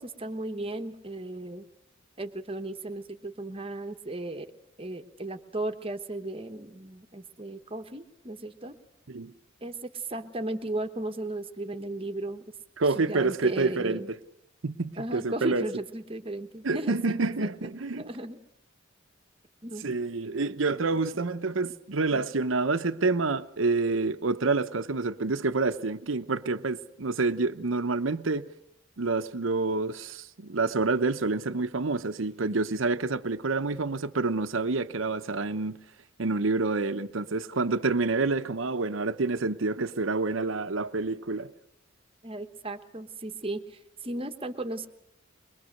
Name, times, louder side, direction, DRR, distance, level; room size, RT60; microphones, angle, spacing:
voice 1, 0.0-1.7 2.2-4.5 4.8-8.7 9.6-12.5 12.9-14.1 15.0-18.4 19.6-19.9 42.2-44.9, right 2 dB, 30° right, 1.2 m, -36 dB
voice 2, 12.8-14.2 14.6-15.7 16.6-18.1 19.8-28.5 29.0-35.8 36.2-41.5, right 3 dB, 80° right, 0.9 m, -28 dB
22.5 x 22.5 x 6.6 m
head